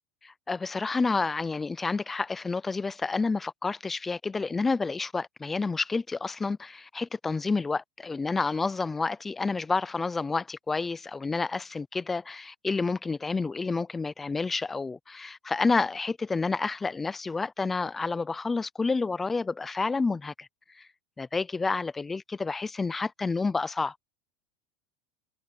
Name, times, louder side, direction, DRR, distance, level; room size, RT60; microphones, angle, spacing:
voice 1, 0.3-20.5 20.8-20.9 21.2-23.9, left 4 dB, 10° left, 0.3 m, -29 dB
supercardioid pair, 175°, 2 cm